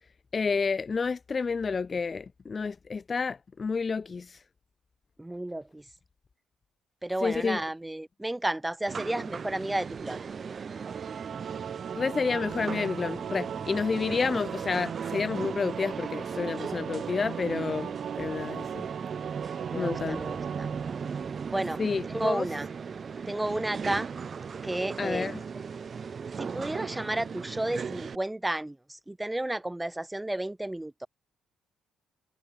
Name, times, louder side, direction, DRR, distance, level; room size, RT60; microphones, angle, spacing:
voice 1, 0.3-4.4 7.2-7.6 11.9-18.9 19.7-20.2 21.8-22.4 25.0-25.4, left 5 dB, 35° left, 0.4 m, -30 dB
voice 2, 5.2-5.8 7.0-10.2 19.7-20.7 21.5-21.8 22.1-22.7 23.3-24.1 24.6-25.4 26.4-31.1, right 1 dB, 10° right, 1.9 m, -32 dB
sound 1, 8.9-28.2, right 6 dB, 45° right, 0.6 m, -37 dB
Singing / Musical instrument, 10.7-22.0, right 8 dB, 60° right, 1.5 m, -38 dB
cardioid pair, 90°, 0 cm